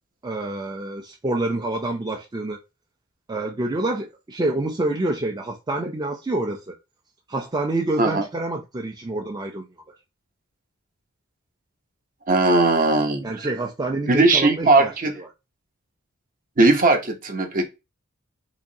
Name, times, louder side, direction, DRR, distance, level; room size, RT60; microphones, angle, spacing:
voice 1, 0.2-2.6 3.3-6.7 7.3-9.7 13.2-14.9, right 2 dB, 20° right, 0.4 m, -27 dB
voice 2, 12.3-13.2 14.1-15.1 16.6-17.7, right 2 dB, 40° right, 0.7 m, -18 dB
3.5 x 2.9 x 2.7 m
head